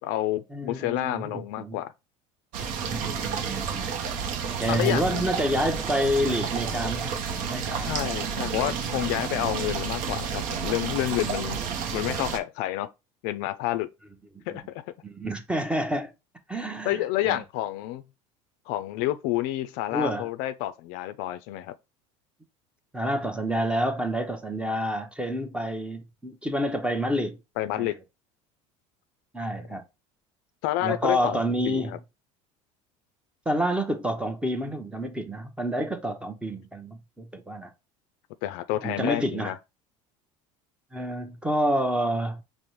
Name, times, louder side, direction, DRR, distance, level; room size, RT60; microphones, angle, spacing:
voice 1, 0.0-1.9 4.7-5.3 7.8-11.6 11.9-12.9 13.2-13.9 14.5-14.8 16.5-18.0 18.7-21.7 27.6-27.9 30.6-31.4 31.7-32.0 38.4-39.6, left 14 dB, 70° left, 0.4 m, -29 dB
voice 2, 0.5-1.8 2.8-3.9 4.6-7.9 14.5-14.6 15.0-16.1 16.5-17.4 19.9-20.3 22.9-27.4 27.7-27.9 29.3-29.8 30.8-32.0 33.5-37.7 38.8-39.5 40.9-42.4, equal, 5° right, 0.7 m, -28 dB
sound 1, 2.5-12.4, right 6 dB, 55° right, 0.6 m, -30 dB
5.1 x 2.1 x 3.0 m
supercardioid pair, 100°, 16 cm